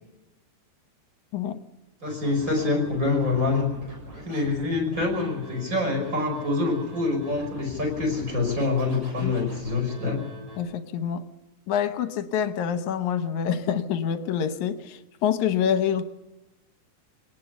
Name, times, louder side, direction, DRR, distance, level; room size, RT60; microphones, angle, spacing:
voice 1, 2.0-3.7 4.2-10.2, left 3 dB, 25° right, 5.4 m, -26 dB
Scratching (performance technique), 2.1-10.6, equal, 70° right, 8.6 m, -43 dB
voice 2, 10.6-11.3 11.7-16.0, left 8 dB, 70° left, 2.1 m, -26 dB
24.5 x 18.5 x 7.1 m
omnidirectional pair, 3.9 m